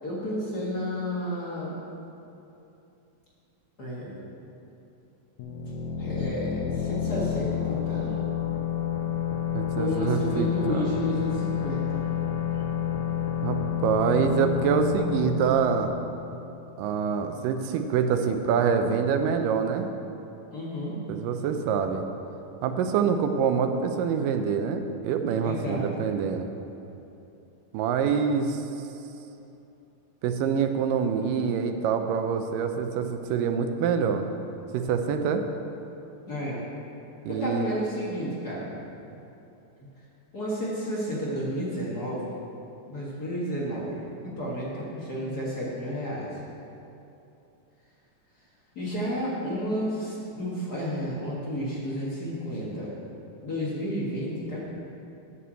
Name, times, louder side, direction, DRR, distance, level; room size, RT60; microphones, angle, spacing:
voice 1, 0.0-1.8 3.8-4.2 6.0-8.1 9.7-12.0 20.5-21.0 25.4-25.9 36.3-36.6 37.3-38.7 40.3-42.3 42.9-46.4 48.7-52.9 53.4-54.6, equal, 40° left, -6 dB, 1.6 m, -31 dB
sound 1, 5.4-16.9, left 9 dB, 70° left, 2.1 m, -29 dB
voice 2, 9.5-11.0 13.4-15.9 16.8-19.9 21.1-22.0 22.6-26.5 27.7-28.6 30.2-34.3 34.7-35.4 37.3-37.7, right 6 dB, 90° right, 6 dB, 2.4 m, -25 dB
9.0 x 6.9 x 7.5 m, 2.9 s
omnidirectional pair, 3.8 m